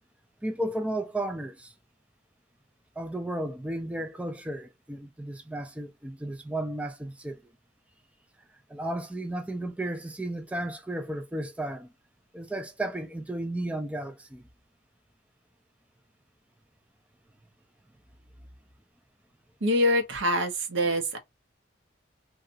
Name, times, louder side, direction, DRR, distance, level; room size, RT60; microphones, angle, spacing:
voice 1, 0.4-1.7 3.0-7.5 8.7-11.9 12.3-14.4, right 1 dB, 5° right, 0.3 m, -34 dB
voice 2, 19.6-21.2, equal, 80° right, 0.9 m, -25 dB
2.8 x 2.3 x 2.6 m
head